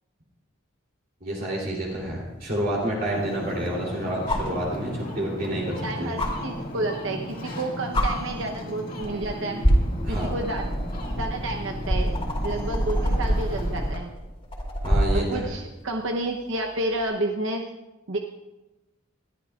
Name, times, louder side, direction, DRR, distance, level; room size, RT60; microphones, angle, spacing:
voice 1, 1.2-6.1 10.0-10.3 14.8-15.4, right 1 dB, 45° right, -4 dB, 3.1 m, -29 dB
sound 1, 2.0-2.1 4.3-4.6 6.2-6.3 7.4-7.6 7.9-8.1 9.0-9.3 9.6-15.3 17.0-17.1, equal, 30° left, 2.8 m, -25 dB
Ocean, 3.1-14.0, left 1 dB, 45° left, 2.0 m, -36 dB
voice 2, 5.8-9.6 10.1-10.6 11.2-12.1 12.4-14.1 15.1-17.7 18.1-18.2, right 2 dB, 65° right, 2 dB, 0.8 m, -30 dB
20.5 x 13.0 x 2.4 m, 1.0 s
head